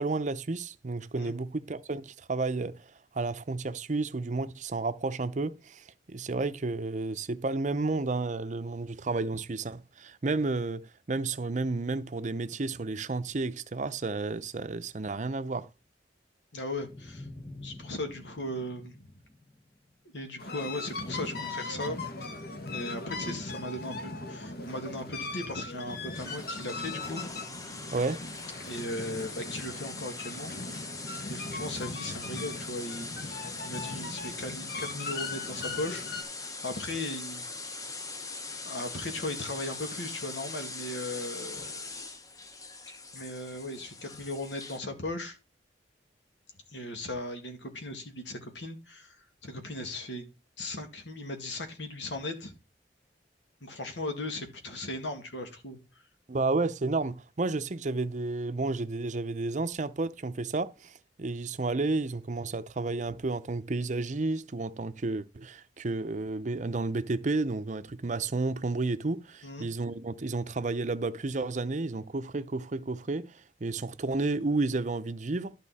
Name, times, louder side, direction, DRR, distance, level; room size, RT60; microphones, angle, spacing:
voice 1, 0.0-15.7 27.9-28.2 56.3-75.5, right 3 dB, 45° right, 0.6 m, -31 dB
voice 2, 16.5-17.3 17.6-19.1 20.1-22.0 22.7-27.2 28.6-30.8 31.3-36.1 36.4-37.7 38.6-41.8 43.1-45.4 46.7-49.2 49.4-50.3 50.6-52.5 53.6-55.8 69.4-69.7, left 1 dB, 80° left, 2.3 m, -37 dB
sound 1, 16.8-20.0, left 2 dB, 40° left, 5.8 m, -48 dB
sound 2, 20.4-36.2, left 3 dB, 60° left, 1.3 m, -39 dB
sound 3, 26.1-44.8, left 3 dB, 20° left, 0.8 m, -41 dB
12.0 x 5.5 x 4.2 m
head